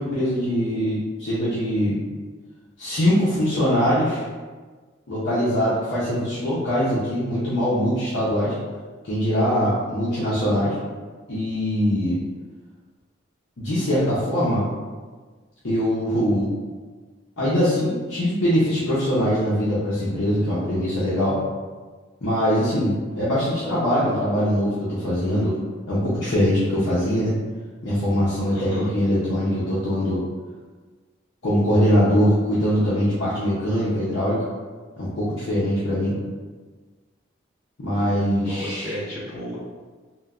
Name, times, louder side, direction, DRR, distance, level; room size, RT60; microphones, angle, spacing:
voice 1, 0.0-2.0 2.8-4.2 5.1-8.5 9.0-10.8 11.3-12.2 13.6-14.6 15.6-16.5 17.4-21.4 22.2-25.6 25.9-27.3 27.8-30.2 31.4-34.4 35.0-36.1 37.8-39.0, equal, 70° left, -11 dB, 0.6 m, -22 dB
voice 2, 28.5-28.9 38.4-39.6, equal, 55° left, -9 dB, 1.3 m, -32 dB
3.0 x 2.2 x 2.4 m, 1.4 s
head